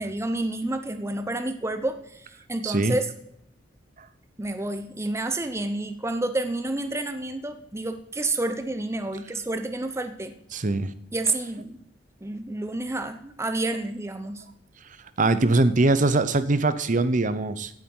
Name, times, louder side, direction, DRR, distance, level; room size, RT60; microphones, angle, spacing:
voice 1, 0.0-3.1 4.4-10.3 11.1-11.8 12.2-14.4, right 2 dB, 15° right, 8 dB, 0.8 m, -29 dB
voice 2, 2.6-3.0 10.5-10.9 15.2-17.7, right 2 dB, 45° right, 13 dB, 0.8 m, -22 dB
16.0 x 7.6 x 5.5 m, 0.75 s
head